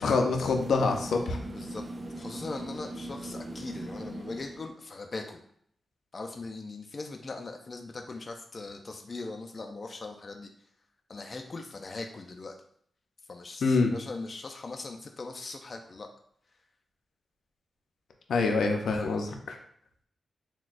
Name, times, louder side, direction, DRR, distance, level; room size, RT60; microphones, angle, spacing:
voice 1, 0.0-1.4 13.6-13.9 18.3-19.6, left 4 dB, 90° left, 3 dB, 0.5 m, -26 dB
sound 1, 0.6-4.8, right 1 dB, 35° right, 0.4 m, -40 dB
voice 2, 1.5-1.8 2.2-5.4 6.1-10.5 11.1-12.6 13.3-16.1, left 3 dB, 40° left, 4 dB, 0.4 m, -40 dB
5.9 x 2.2 x 2.4 m, 0.65 s
wide cardioid pair, 100°, 0 cm